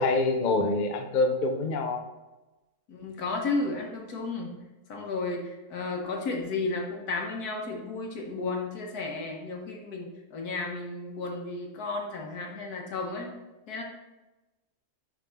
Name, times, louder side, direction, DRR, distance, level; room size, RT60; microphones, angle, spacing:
voice 1, 0.0-2.0, left 3 dB, 50° left, 5 dB, 0.5 m, -25 dB
voice 2, 2.9-4.5 4.9-13.3 13.7-13.8, left 3 dB, 85° left, 1 dB, 1.7 m, -33 dB
9.7 x 3.6 x 3.5 m, 1.1 s
omnidirectional pair, 1.6 m